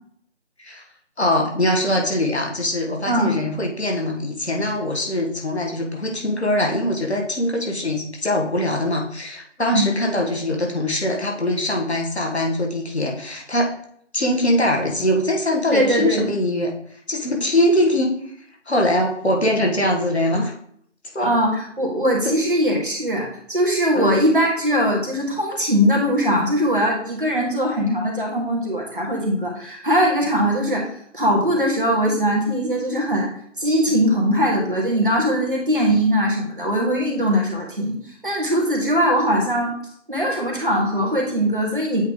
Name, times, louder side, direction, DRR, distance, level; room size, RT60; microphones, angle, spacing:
voice 1, 1.2-13.7 14.1-16.7 17.1-18.1 18.7-20.5 21.1-21.3 22.2-22.3 23.9-24.1, left 1 dB, 60° left, 0 dB, 1.4 m, -22 dB
voice 2, 3.0-3.4 9.7-9.9 15.7-16.3 21.2-30.9 31.1-33.3 33.6-38.0 38.2-39.7 40.1-42.0, equal, 45° right, -1 dB, 1.7 m, -21 dB
8.1 x 3.1 x 3.7 m, 0.66 s
figure-of-eight pair, 175°, 37 cm